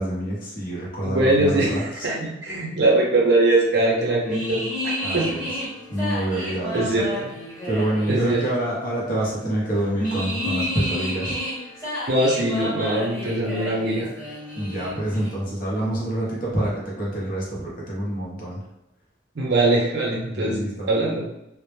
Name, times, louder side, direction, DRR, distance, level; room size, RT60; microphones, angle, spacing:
voice 1, 0.0-1.8 5.0-5.5 5.9-6.9 7.6-11.3 14.6-18.6 20.3-20.9, right 1 dB, 45° left, -5 dB, 0.7 m, -27 dB
voice 2, 1.0-5.5 6.3-7.3 8.1-8.4 12.1-14.1 19.3-20.6 20.9-21.2, right 2 dB, 55° right, -3 dB, 0.6 m, -22 dB
sound 1, 4.2-15.3, equal, 15° left, 1.1 m, -31 dB
2.0 x 2.0 x 3.0 m, 0.88 s
head